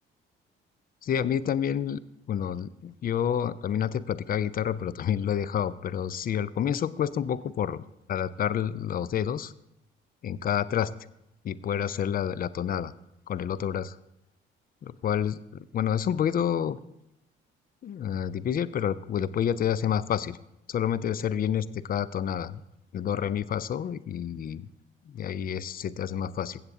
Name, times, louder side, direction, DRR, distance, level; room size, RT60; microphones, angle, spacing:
voice 1, 1.0-2.0 2.3-7.8 8.1-9.5 10.2-10.9 11.4-12.9 13.3-14.0 14.8-16.8 17.8-20.4 20.7-22.6 22.9-24.7 25.1-26.6, left 9 dB, 30° left, 19 dB, 0.4 m, -29 dB
15.5 x 7.3 x 3.6 m, 0.84 s
figure-of-eight pair, 45°, 29 cm